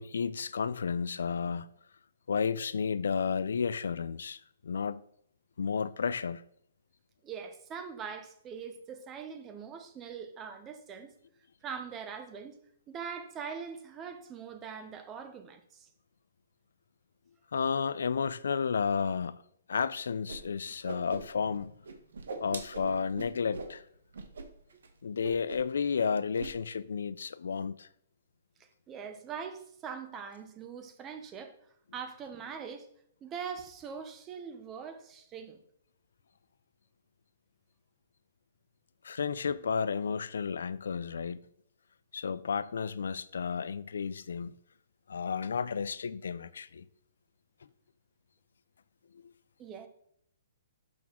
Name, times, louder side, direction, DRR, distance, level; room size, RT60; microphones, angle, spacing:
voice 1, 0.0-1.7 2.3-5.0 5.6-6.4 17.5-19.4 19.7-21.7 22.4-23.8 25.0-27.9 39.0-41.4 42.1-44.5 45.1-46.9, left 6 dB, 85° left, 0.4 m, -32 dB
voice 2, 7.2-11.1 11.6-12.6 12.9-15.9 28.9-31.5 31.9-32.9 33.2-35.6 49.6-49.9, right 6 dB, 15° right, 0.6 m, -42 dB
Whoosh swoosh swish, 20.3-20.4 20.7-21.6 21.8-23.7 24.1-24.5 24.7-24.9 25.2-25.7 26.0-26.5, right 3 dB, 90° right, 1.1 m, -41 dB
6.0 x 5.9 x 3.6 m
hypercardioid pair, 170°, 0 cm